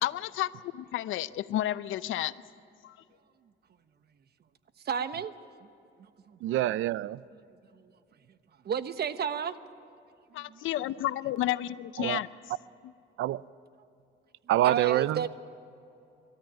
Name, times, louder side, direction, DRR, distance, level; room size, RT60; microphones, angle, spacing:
voice 1, 0.0-2.3 2.8-3.0 10.3-12.3, left 13 dB, 85° left, 0.7 m, -31 dB
voice 2, 4.8-5.3 5.6-5.7 6.3-6.4 7.7-8.0 8.6-9.6 10.3-10.6 14.6-15.3, right 7 dB, 55° right, 1.1 m, -32 dB
voice 3, 6.4-7.2 12.0-12.2 13.2-13.4 14.5-15.3, right 14 dB, 80° right, 0.5 m, -26 dB
27.0 x 13.5 x 8.9 m
cardioid pair, 90°, 20 cm